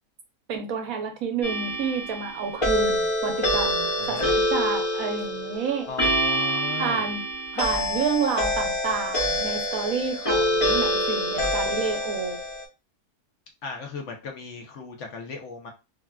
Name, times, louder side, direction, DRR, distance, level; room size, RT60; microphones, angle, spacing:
voice 1, 0.5-5.9 6.8-7.2 7.5-12.4, right 5 dB, 65° right, 1.0 m, -29 dB
sound 1, 1.4-12.6, equal, 35° left, 0.5 m, -26 dB
voice 2, 4.0-4.3 5.9-7.1 13.6-15.7, left 4 dB, 60° left, 0.8 m, -36 dB
3.4 x 2.3 x 2.2 m
omnidirectional pair, 1.7 m